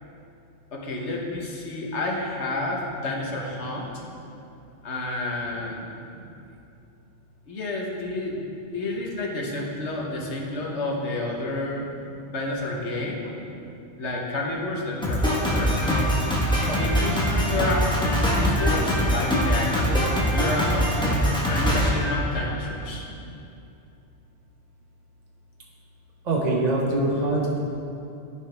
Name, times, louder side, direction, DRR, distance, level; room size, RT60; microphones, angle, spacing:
voice 1, 0.7-4.0 4.8-5.9 7.5-11.9 12.3-13.3 14.0-16.2 16.6-19.9 20.3-21.1 21.5-23.0, left 2 dB, 75° left, -1 dB, 1.4 m, -30 dB
Drum kit, 15.0-22.8, equal, 5° left, 1.0 m, -23 dB
voice 2, 16.8-17.2 26.2-27.6, right 2 dB, 40° right, -3 dB, 1.1 m, -24 dB
14.0 x 4.7 x 3.4 m, 2.7 s
omnidirectional pair, 1.2 m